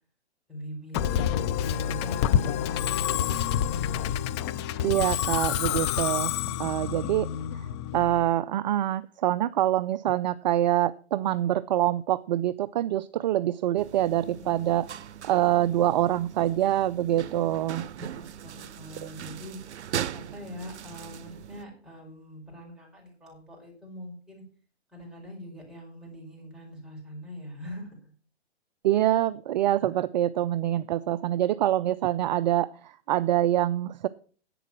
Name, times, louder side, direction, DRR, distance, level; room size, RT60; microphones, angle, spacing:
voice 1, 0.5-1.3 1.5-3.5 6.4-6.7 7.0-7.2 11.2-11.5 18.1-19.6 20.1-24.4 24.9-28.1 29.8-29.9, equal, ahead, -3 dB, 5.4 m, -42 dB
Musical instrument, 0.9-8.3, left 10 dB, 25° left, 0.5 m, -28 dB
voice 2, 4.8-7.3 7.5-7.7 7.9-14.9 15.2-17.9 19.0-19.1 28.8-34.1, right 13 dB, 45° right, 15 dB, 0.4 m, -25 dB
sound 1, 13.8-21.6, right 9 dB, 90° right, 0.6 m, -39 dB
11.0 x 8.4 x 5.9 m, 0.42 s
hypercardioid pair, 140°, 33 cm